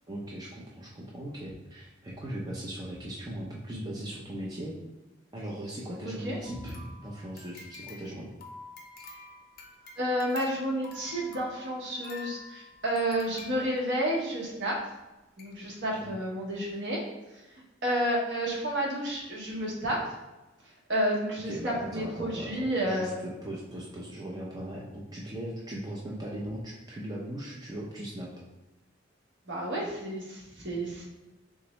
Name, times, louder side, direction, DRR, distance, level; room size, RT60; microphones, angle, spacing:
voice 1, 0.1-4.8 5.3-8.3 15.9-16.1 21.4-23.1 23.4-28.3, right 1 dB, 20° right, -4 dB, 0.4 m, -39 dB
voice 2, 6.0-6.4 6.6-6.7 10.0-14.8 15.4-17.0 17.8-20.0 20.9-23.2 29.5-31.0, right 1 dB, 65° right, -3 dB, 1.0 m, -30 dB
sound 1, 6.4-14.2 14.9-15.0 15.4-15.5 15.9-16.0, left 3 dB, 50° left, 0.5 m, -47 dB
3.4 x 3.1 x 3.0 m, 1.0 s
head